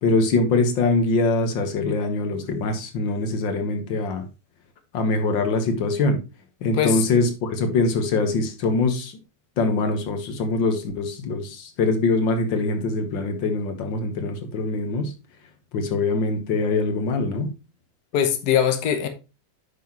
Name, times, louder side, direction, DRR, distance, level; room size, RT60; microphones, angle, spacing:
voice 1, 0.0-4.3 4.9-6.2 6.6-9.1 9.6-15.1 15.7-17.5, left 3 dB, 90° left, 2.0 m, -23 dB
voice 2, 18.1-19.1, left 9 dB, 60° left, 1.5 m, -21 dB
9.1 x 5.9 x 3.0 m
omnidirectional pair, 2.0 m